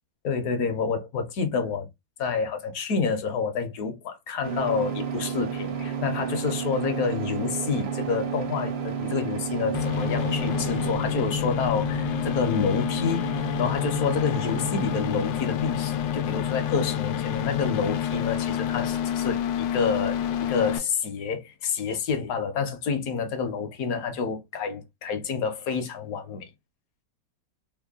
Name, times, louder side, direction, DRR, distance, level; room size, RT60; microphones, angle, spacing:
voice 1, 0.2-1.9 2.2-26.5, left 5 dB, 60° left, 1.1 m, -28 dB
sound 1, 4.4-11.0, right 5 dB, 55° right, 0.8 m, -33 dB
sound 2, 4.6-15.2, right 12 dB, 85° right, 1.3 m, -36 dB
sound 3, 9.7-20.8, left 9 dB, 85° left, 1.3 m, -28 dB
3.5 x 2.2 x 3.5 m
omnidirectional pair, 1.9 m